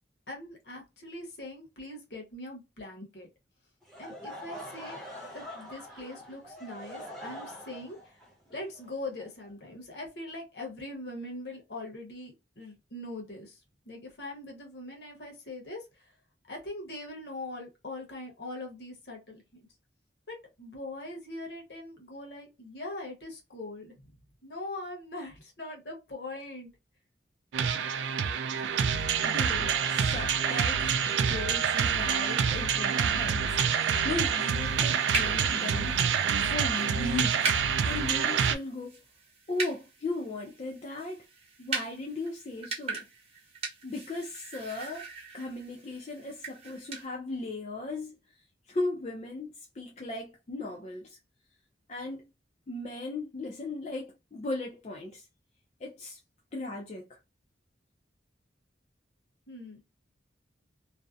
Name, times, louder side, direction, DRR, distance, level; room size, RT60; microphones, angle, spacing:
voice 1, 0.3-3.3 4.0-8.2 8.5-16.1 16.5-19.7 20.3-24.1 24.4-26.7 59.5-59.8, left 2 dB, 60° left, 0.9 m, -42 dB
Laughter / Crowd, 3.8-9.7, equal, ahead, 0.7 m, -44 dB
sound 1, 27.5-38.6, right 7 dB, 75° right, 0.3 m, -27 dB
voice 2, 29.2-39.0 39.5-41.2 41.6-43.1 43.8-45.1 45.3-51.2 51.9-52.2 52.7-55.3 55.8-56.2 56.5-57.2, left 2 dB, 35° left, 0.4 m, -37 dB
sound 2, 34.5-47.1, right 3 dB, 35° right, 0.9 m, -40 dB
2.6 x 2.0 x 2.3 m
head